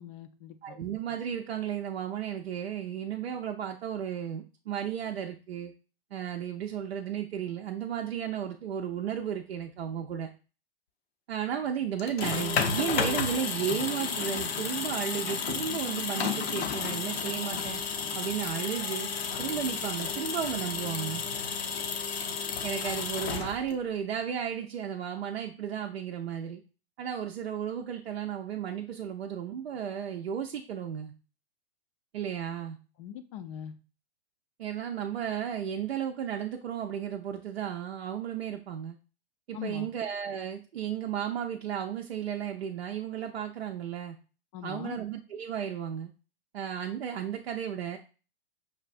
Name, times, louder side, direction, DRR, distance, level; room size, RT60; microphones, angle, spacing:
voice 1, 0.0-0.8 33.0-33.7 39.5-39.9 44.5-45.0, left 9 dB, 35° left, 9 dB, 0.4 m, -41 dB
voice 2, 0.6-5.7 6.1-10.3 11.3-17.8 18.1-19.1 19.4-21.2 22.6-26.6 27.0-31.1 32.1-32.8 34.6-39.0 39.5-44.2 44.6-46.1 46.5-48.0, right 8 dB, 80° right, 2 dB, 0.5 m, -34 dB
sound 1, 12.0-23.9, left 6 dB, 75° left, 0.7 m, -32 dB
5.6 x 2.2 x 2.5 m, 0.34 s
hypercardioid pair, 115°, 31 cm